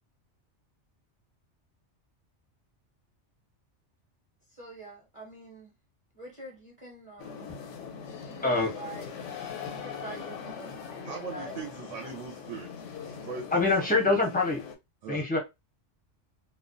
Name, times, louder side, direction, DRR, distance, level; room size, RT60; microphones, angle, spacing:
voice 1, 4.5-5.7 6.1-7.5 8.2-9.1 9.7-11.6, right 2 dB, 35° right, 0.7 m, -45 dB
sound 1, 7.2-14.8, left 6 dB, 85° left, 0.9 m, -41 dB
voice 2, 8.4-8.7 13.5-14.6 15.1-15.4, left 3 dB, 15° left, 0.3 m, -24 dB
voice 3, 11.0-12.7 13.1-13.6 15.0-15.3, right 6 dB, 85° right, 0.9 m, -39 dB
2.3 x 2.1 x 2.5 m
omnidirectional pair, 1.2 m